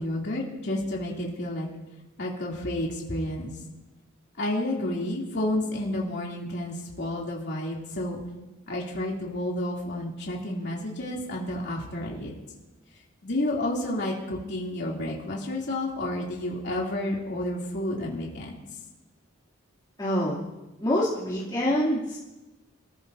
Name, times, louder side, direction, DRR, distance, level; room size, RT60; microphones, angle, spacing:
voice 1, 0.0-1.7 2.2-3.5 4.4-8.2 8.7-12.3 13.2-18.6, left 1 dB, 55° left, -3 dB, 2.9 m, -30 dB
voice 2, 20.0-20.4 20.8-22.2, equal, 20° left, -8 dB, 2.7 m, -25 dB
26.5 x 14.5 x 2.7 m, 1.1 s
head